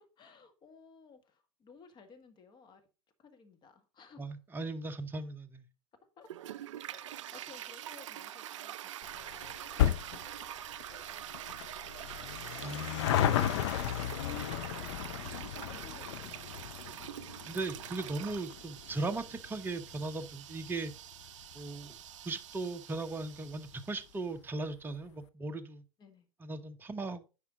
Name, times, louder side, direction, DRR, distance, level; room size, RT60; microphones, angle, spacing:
voice 1, 0.0-2.9 3.2-4.3 6.2-6.3 6.8-10.5 10.9-11.8 15.2-17.1 26.0-26.3, left 5 dB, 25° left, 1.6 m, -58 dB
voice 2, 4.2-5.7 12.6-12.9 17.5-20.9 21.5-22.0 22.2-25.8 26.4-27.3, right 3 dB, 10° right, 0.9 m, -38 dB
Toilet flush, 6.2-24.2, right 12 dB, 60° right, 0.4 m, -45 dB
sound 1, 9.0-21.8 22.1-22.2 23.0-23.1 23.3-23.4 23.7-23.8, left 11 dB, 55° left, 0.6 m, -35 dB
9.6 x 5.7 x 3.7 m
figure-of-eight pair, 90°, 17 cm